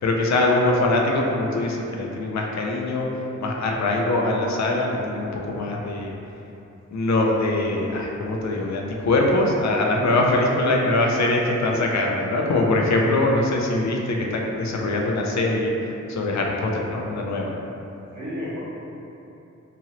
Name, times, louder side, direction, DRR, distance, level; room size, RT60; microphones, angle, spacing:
voice 1, 0.0-3.1 3.4-6.1 6.9-15.7 16.1-17.5, left 2 dB, 70° left, 0 dB, 0.5 m, -22 dB
voice 2, 10.0-10.4 10.7-11.8 18.1-18.6, equal, 90° right, -9 dB, 1.0 m, -34 dB
2.9 x 2.5 x 2.8 m, 2.9 s
wide cardioid pair, 105°, 29 cm